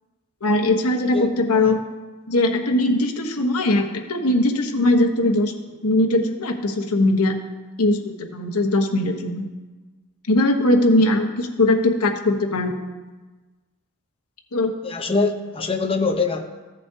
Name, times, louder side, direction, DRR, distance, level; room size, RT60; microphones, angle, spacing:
voice 1, 0.4-1.8 2.3-5.5 5.8-7.4 7.8-9.5 10.3-12.8 14.5-14.7, left 1 dB, 85° left, 4 dB, 1.1 m, -20 dB
voice 2, 1.1-1.7 14.8-16.5, left 3 dB, 25° left, 4 dB, 0.8 m, -24 dB
15.0 x 7.3 x 2.7 m, 1.3 s
head